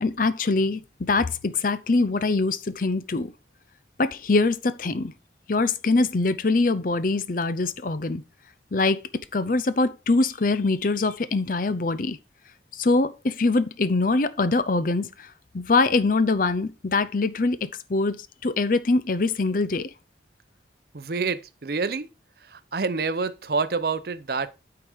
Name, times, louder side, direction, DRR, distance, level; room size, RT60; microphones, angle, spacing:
voice 1, 0.0-3.3 4.0-5.1 5.5-8.2 8.7-9.0 9.3-12.2 12.7-19.9, left 3 dB, 50° left, 0.6 m, -23 dB
voice 2, 20.9-22.1 22.4-24.5, right 4 dB, 55° right, 0.6 m, -27 dB
9.0 x 4.8 x 4.9 m
head